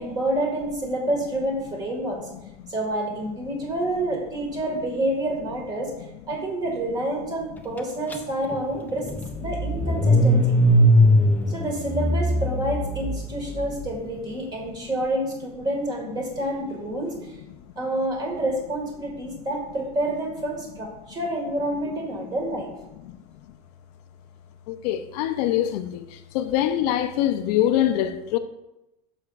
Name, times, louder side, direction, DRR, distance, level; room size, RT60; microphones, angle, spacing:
voice 1, 0.0-2.2 2.7-5.9 6.3-9.1 9.4-10.4 11.5-17.4 17.8-22.7, right 1 dB, 20° right, 1.8 m, -28 dB
Car / Engine starting, 8.1-8.2 8.5-13.7, equal, 10° left, 0.5 m, -20 dB
voice 2, 24.7-28.4, left 11 dB, 70° left, 0.6 m, -24 dB
11.5 x 6.4 x 2.4 m
cardioid pair, 165°, 21 cm